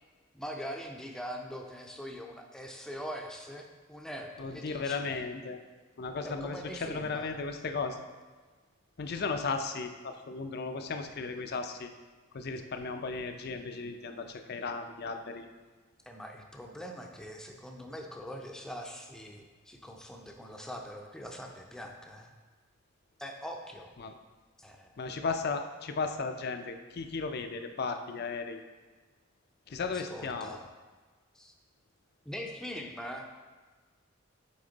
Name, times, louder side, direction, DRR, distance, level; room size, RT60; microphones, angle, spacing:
voice 1, 0.3-5.1 6.2-7.3 16.1-22.3 23.2-23.9 24.6-24.9 29.8-30.7 31.3-31.5 32.3-33.3, equal, 5° left, 2 dB, 0.5 m, -42 dB
voice 2, 4.4-5.6 6.0-8.1 9.0-11.9 12.3-15.5 24.0-24.1 25.0-28.6 29.7-30.6, left 4 dB, 50° left, 7 dB, 0.5 m, -35 dB
8.6 x 3.6 x 3.9 m, 1.4 s
head